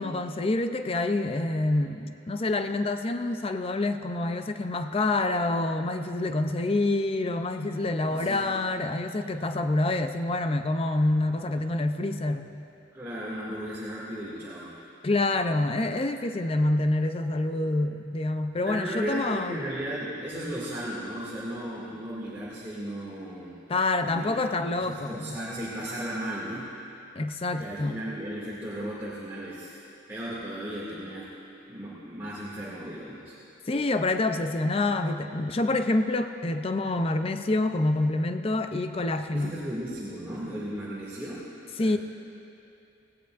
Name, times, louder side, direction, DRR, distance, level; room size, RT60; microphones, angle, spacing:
voice 1, 0.0-12.5 15.0-19.6 23.7-25.4 27.2-28.0 33.7-39.5 41.8-42.0, left 2 dB, 30° left, 8 dB, 0.5 m, -27 dB
voice 2, 8.0-8.5 12.9-14.8 18.6-23.5 24.0-24.3 24.7-26.7 27.5-29.8 30.1-31.3 31.7-33.3 39.3-41.5 41.8-42.0, right 1 dB, 15° right, -9 dB, 2.2 m, -35 dB
18.5 x 17.5 x 2.5 m, 2.7 s
head